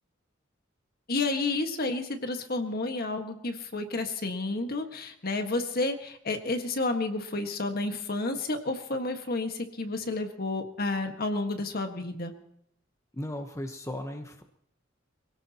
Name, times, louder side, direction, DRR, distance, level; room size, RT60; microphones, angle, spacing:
voice 1, 1.1-12.3, left 2 dB, 50° left, 5 dB, 1.7 m, -31 dB
voice 2, 13.1-14.4, left 1 dB, 15° left, 5 dB, 1.1 m, -36 dB
24.5 x 17.0 x 3.0 m, 0.76 s
head